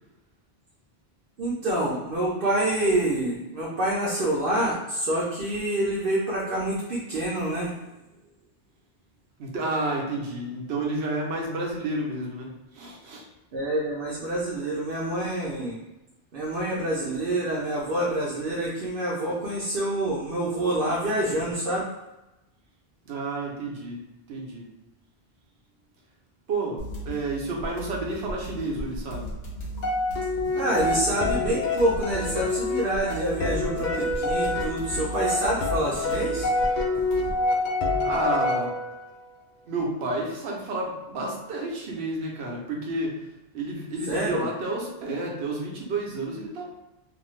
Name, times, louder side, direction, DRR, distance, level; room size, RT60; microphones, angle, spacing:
voice 1, 1.4-7.7 13.5-15.8 16.3-21.9 30.5-36.5 44.1-44.5, right 1 dB, 65° right, -5 dB, 0.8 m, -27 dB
voice 2, 9.4-13.3 23.1-24.0 24.3-24.7 26.5-29.3 38.0-38.7 39.7-43.3 43.5-46.6, right 2 dB, 90° right, -1 dB, 1.0 m, -30 dB
sound 1, 26.8-37.4, right 1 dB, 85° left, 1.2 m, -37 dB
sound 2, 29.8-39.1, left 2 dB, 60° left, 0.6 m, -27 dB
2.6 x 2.5 x 3.1 m, 0.98 s
omnidirectional pair, 1.0 m